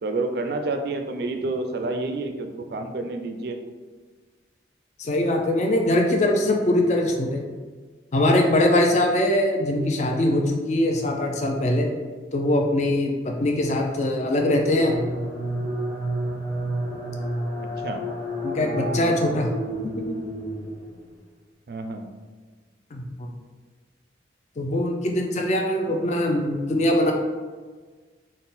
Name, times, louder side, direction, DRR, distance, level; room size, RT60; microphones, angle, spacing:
voice 1, 0.0-3.6 17.6-18.1 21.7-22.1, right 2 dB, 55° right, 6 dB, 0.3 m, -29 dB
voice 2, 5.0-7.4 8.1-11.9 12.3-15.0 18.4-19.5 19.8-20.2 22.9-23.3 24.6-27.1, left 1 dB, 40° left, 1 dB, 0.4 m, -22 dB
sound 1, 14.2-21.1, right 1 dB, 15° left, 1.4 m, -30 dB
3.7 x 2.1 x 4.1 m, 1.4 s
head